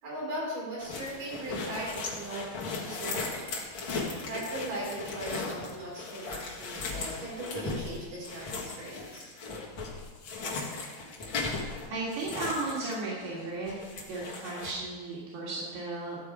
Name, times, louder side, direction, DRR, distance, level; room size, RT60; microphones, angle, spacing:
voice 1, 0.0-2.5 2.8-3.6 4.2-9.3, right 1 dB, 55° right, -6 dB, 5.6 m, -38 dB
sound 1, 0.8-13.4 13.7-14.7, left 3 dB, 50° left, 1.5 m, -37 dB
voice 2, 11.9-13.7 14.1-16.2, right 2 dB, 85° right, -6 dB, 3.9 m, -35 dB
13.5 x 7.4 x 5.0 m, 1.4 s
omnidirectional pair, 4.5 m